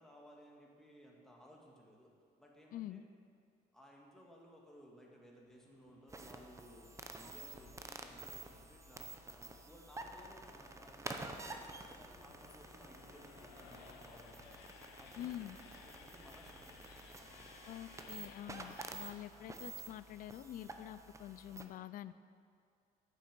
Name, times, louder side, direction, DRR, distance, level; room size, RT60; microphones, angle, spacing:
voice 1, 0.0-2.1 2.4-3.0 3.7-15.5 15.8-17.6 18.6-18.9 19.1-19.5, equal, 5° left, -2 dB, 1.7 m, -60 dB
voice 2, 2.7-3.0 15.2-15.6 17.6-22.2, left 12 dB, 55° left, 15 dB, 0.4 m, -47 dB
Train, 5.5-18.9, left 5 dB, 85° left, 1.2 m, -60 dB
sound 1, 6.1-21.6, right 2 dB, 15° right, 0.7 m, -50 dB
9.0 x 7.0 x 6.8 m, 2.3 s
cardioid pair, 110°, 17 cm